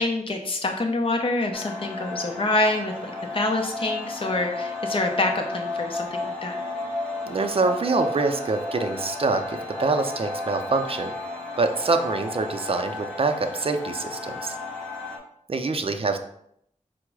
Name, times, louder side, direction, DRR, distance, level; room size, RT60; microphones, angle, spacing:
voice 1, 0.0-6.6, left 2 dB, 40° left, 3 dB, 0.6 m, -26 dB
sound 1, 1.5-15.2, left 2 dB, 5° left, 0.9 m, -33 dB
voice 2, 7.2-11.1 11.6-14.6 15.5-16.2, right 3 dB, 45° right, 6 dB, 0.4 m, -25 dB
4.5 x 2.0 x 4.6 m, 0.72 s
wide cardioid pair, 75°, 13 cm